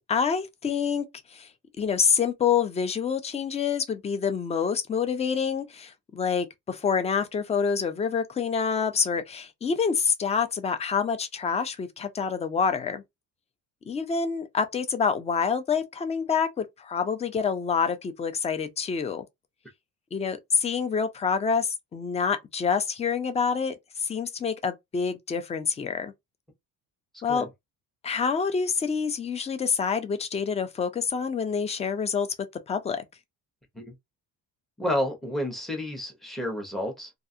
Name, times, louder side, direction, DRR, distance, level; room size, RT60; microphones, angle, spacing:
voice 1, 0.1-1.5 1.8-13.0 13.9-19.2 20.1-26.1 27.2-27.5 28.0-32.3 32.7-33.0, left 6 dB, 20° left, 0.3 m, -27 dB
voice 2, 34.8-37.1, left 1 dB, ahead, 0.7 m, -30 dB
2.4 x 2.3 x 2.6 m
cardioid pair, 130°, 39 cm